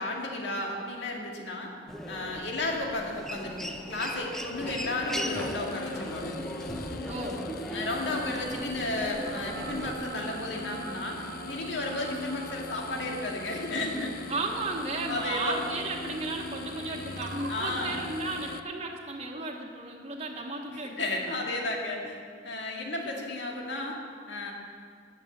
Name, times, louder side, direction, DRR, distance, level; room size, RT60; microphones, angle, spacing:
voice 1, 0.0-1.7 2.1-6.3 7.7-14.1 15.1-15.6 17.5-18.0 21.0-22.1 22.4-24.0 24.3-24.5, left 2 dB, 75° left, 0 dB, 2.2 m, -33 dB
Human voice, 1.9-9.9, equal, ahead, 0.8 m, -38 dB
sound 1, 5.2-18.6, left 4 dB, 55° left, 0.5 m, -41 dB
voice 2, 7.1-7.4 14.3-21.5, right 2 dB, 35° right, -2 dB, 1.4 m, -34 dB
sound 2, 9.2-17.7, right 3 dB, 70° right, 1.2 m, -44 dB
14.5 x 6.7 x 9.6 m, 2.2 s
head